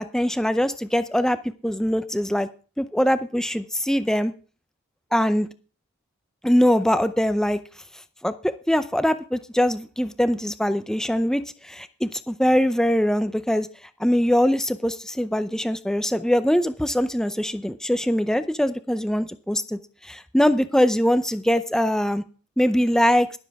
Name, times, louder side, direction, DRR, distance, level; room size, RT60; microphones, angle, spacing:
voice 1, 0.0-1.4 1.6-2.5 2.8-4.3 5.1-5.5 6.4-7.6 8.2-13.7 14.0-22.2 22.6-23.3, equal, 5° left, 11 dB, 0.6 m, -22 dB
21.5 x 7.3 x 3.5 m, 0.37 s
head